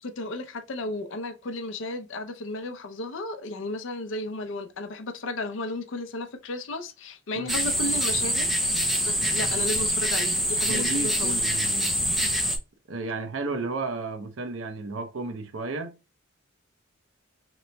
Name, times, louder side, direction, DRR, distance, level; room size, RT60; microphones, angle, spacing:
voice 1, 0.0-8.5 8.8-11.4, left 2 dB, 65° left, 0.5 m, -34 dB
sound 1, 7.5-12.6, equal, ahead, 0.4 m, -25 dB
voice 2, 10.7-11.9 12.9-16.0, right 3 dB, 70° right, 0.6 m, -33 dB
3.0 x 2.1 x 3.9 m
head